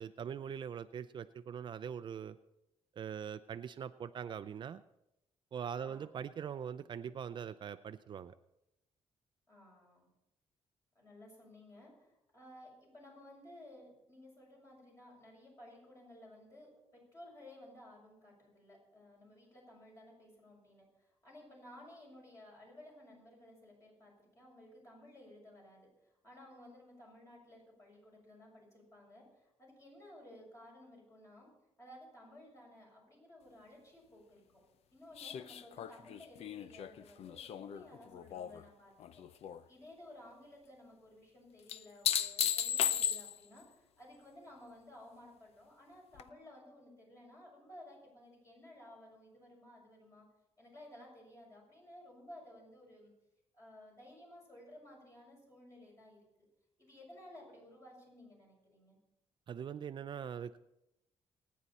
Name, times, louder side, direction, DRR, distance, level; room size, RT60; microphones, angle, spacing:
voice 1, 0.0-2.4 3.0-4.8 5.5-8.3 59.5-60.6, right 8 dB, 45° right, 11 dB, 0.5 m, -42 dB
voice 2, 5.8-6.2 9.5-10.1 10.9-31.5 31.8-34.6 34.9-39.2 39.7-50.2 50.6-53.1 53.5-56.2 56.8-59.0, left 1 dB, 25° left, -2 dB, 6.7 m, -56 dB
sound 1, 35.2-38.6 39.0-39.6 41.7-43.6 46.2-46.3, left 9 dB, 70° left, 0.6 m, -36 dB
27.0 x 9.5 x 4.2 m, 0.87 s
cardioid pair, 130°, 11 cm